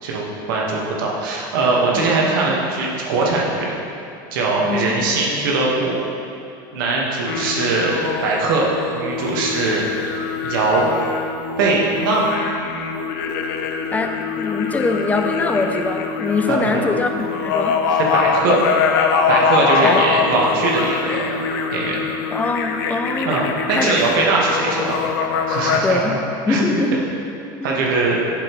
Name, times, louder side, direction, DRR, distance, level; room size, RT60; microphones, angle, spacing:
voice 1, 0.0-3.7 4.3-6.0 6.7-9.9 10.4-10.8 11.6-12.3 16.5-16.8 17.9-18.6 19.3-21.4 21.7-22.0 23.2-23.4 23.7-25.0 25.5-26.2 26.5-27.0 27.6-28.2, right 3 dB, 85° right, -3 dB, 1.5 m, -21 dB
voice 2, 4.6-5.0 13.9-17.8 19.8-20.0 22.3-23.4 23.7-23.9 25.8-26.2 26.5-27.1 27.6-27.8, left 3 dB, 15° left, 5 dB, 0.5 m, -22 dB
sound 1, 7.3-25.8, left 6 dB, 80° left, 0.6 m, -23 dB
8.2 x 6.9 x 3.1 m, 2.8 s
supercardioid pair, 120°, 11 cm